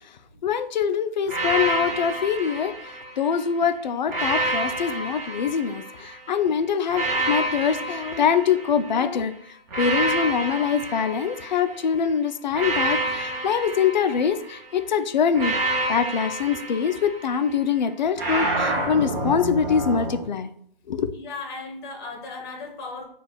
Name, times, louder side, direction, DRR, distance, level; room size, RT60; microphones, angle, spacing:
voice 1, 0.4-2.7 3.2-9.3 9.8-15.6 15.9-20.5 20.9-21.1, left 7 dB, 50° left, 10 dB, 0.4 m, -24 dB
sound 1, 1.3-3.4 4.1-6.2 6.9-9.1 9.7-11.9 12.5-14.7 15.3-17.5 18.2-20.2, right 2 dB, 20° right, 0.7 m, -28 dB
voice 2, 21.1-23.0, left 3 dB, 25° left, 2 dB, 1.0 m, -36 dB
3.8 x 2.4 x 4.6 m, 0.65 s
figure-of-eight pair, 140°, 29 cm